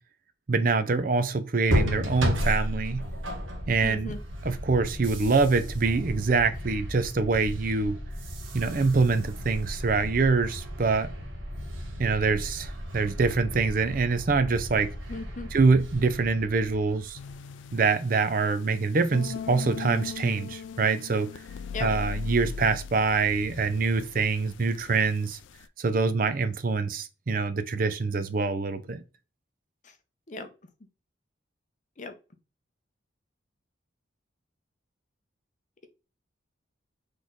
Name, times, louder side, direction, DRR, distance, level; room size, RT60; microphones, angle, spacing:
voice 1, 0.5-3.0 3.7-4.1 4.4-8.0 8.5-11.1 12.0-14.9 15.5-17.2 17.7-21.3 21.8-25.4 25.8-29.0, right 4 dB, 45° right, 0.5 m, -25 dB
sound 1, 1.7-17.4, equal, 90° right, 1.2 m, -34 dB
voice 2, 3.8-4.2 15.1-15.5 21.7-21.9 29.8-30.0 30.3-30.5 32.0-32.1, left 2 dB, 40° left, 0.7 m, -36 dB
sound 2, 17.2-25.7, left 6 dB, 75° left, 0.3 m, -39 dB
4.2 x 3.2 x 3.7 m
head